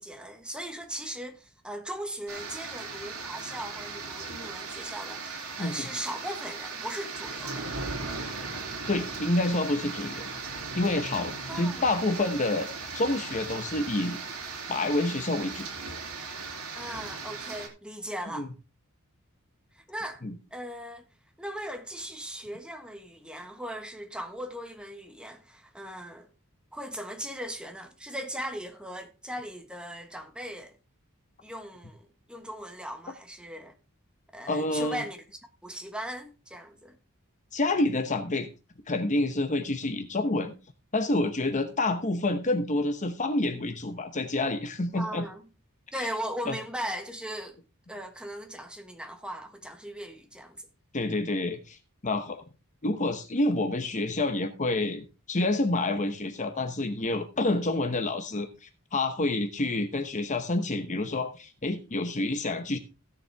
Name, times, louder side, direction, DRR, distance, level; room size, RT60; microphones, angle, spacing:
voice 1, 0.0-7.7 11.5-11.8 16.7-18.5 19.7-20.3 20.5-21.0 21.4-26.3 26.7-30.7 31.4-33.8 34.3-37.0 44.9-45.4 45.9-47.6 47.9-50.6, equal, 5° right, 1.4 m, -38 dB
sound 1, 2.3-17.7, right 4 dB, 65° right, 3.3 m, -37 dB
voice 2, 8.9-10.3 10.7-14.2 14.7-15.7 18.3-18.5 20.2-20.3 34.5-35.0 37.5-38.5 38.9-40.5 40.9-45.2 46.0-46.1 46.5-46.6 50.9-52.4 52.8-62.8, left 2 dB, 35° left, 0.9 m, -28 dB
16.0 x 7.1 x 3.5 m
head